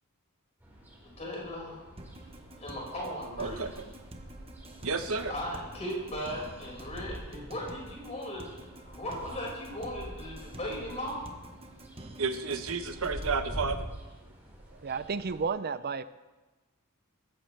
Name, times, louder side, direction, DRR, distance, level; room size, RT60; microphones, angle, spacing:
sound 1, 0.6-15.5, equal, 10° right, 4.8 m, -46 dB
voice 1, 1.2-1.8 2.6-3.8 5.3-11.3, equal, 30° left, -3 dB, 5.7 m, -37 dB
sound 2, 2.0-13.4, right 1 dB, 25° right, 1.1 m, -48 dB
voice 2, 3.4-3.7 4.8-5.3 12.2-13.8, right 4 dB, 70° right, 8 dB, 1.1 m, -31 dB
voice 3, 14.7-16.0, right 5 dB, 45° right, 14 dB, 0.6 m, -32 dB
20.0 x 14.5 x 3.4 m, 1.2 s
head